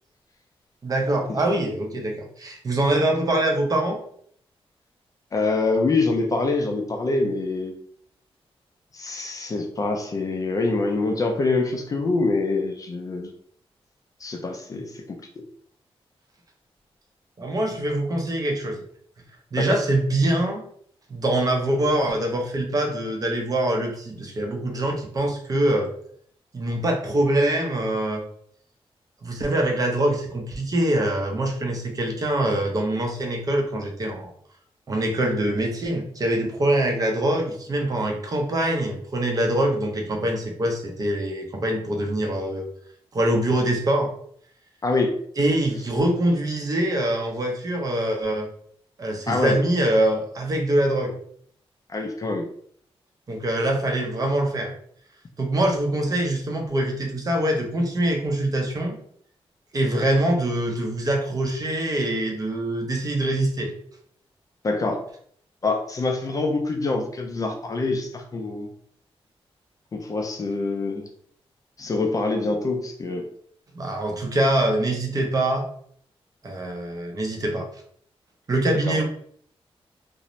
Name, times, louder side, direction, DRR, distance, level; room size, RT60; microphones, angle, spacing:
voice 1, 0.8-4.0 17.4-18.8 19.5-20.6 21.1-25.9 26.5-28.2 29.2-34.3 34.9-42.7 43.1-44.1 45.4-48.5 49.0-51.1 53.3-54.7 55.4-59.0 59.7-63.7 73.7-75.6 76.4-77.7 78.5-79.0, right 1 dB, 35° right, 1 dB, 0.5 m, -24 dB
voice 2, 5.3-7.7 8.9-13.3 14.2-15.0 19.6-19.8 44.8-45.1 49.3-49.6 51.9-52.5 64.6-65.0 65.6-68.7 69.9-71.1 71.8-73.3 78.9-79.0, left 3 dB, 35° left, 3 dB, 0.4 m, -25 dB
2.5 x 2.0 x 2.9 m, 0.62 s
wide cardioid pair, 145°, 10 cm